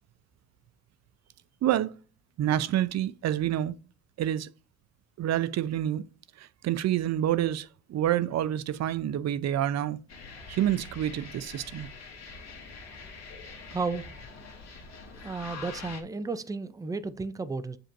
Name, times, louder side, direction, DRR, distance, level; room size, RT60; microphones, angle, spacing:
voice 1, 1.6-1.9 2.4-3.7 4.2-4.5 5.2-6.0 6.4-10.0 10.5-11.9, right 12 dB, 60° right, 0.5 m, -28 dB
sound 1, 10.1-16.0, left 4 dB, 60° left, 1.6 m, -44 dB
voice 2, 13.7-14.1 15.2-17.8, right 4 dB, 10° right, 0.5 m, -33 dB
7.3 x 5.2 x 2.6 m
cardioid pair, 90°, 30 cm